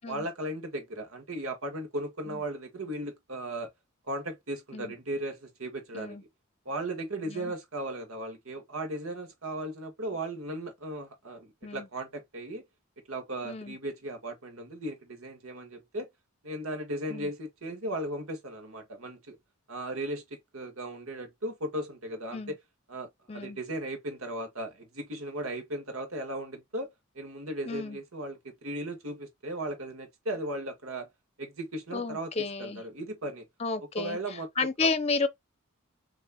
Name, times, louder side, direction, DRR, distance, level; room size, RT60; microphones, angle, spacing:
voice 1, 0.1-3.7 4.1-6.3 6.7-12.6 13.1-16.1 16.4-19.4 19.7-22.6 22.9-31.1 31.4-33.4 33.8-34.9, right 1 dB, 85° right, 1.8 m, -37 dB
voice 2, 13.4-13.8 17.1-17.3 22.3-22.5 23.3-23.6 27.6-28.0 31.9-32.8 33.6-34.2 34.6-35.3, left 4 dB, 30° left, 0.7 m, -32 dB
6.5 x 3.3 x 2.3 m
head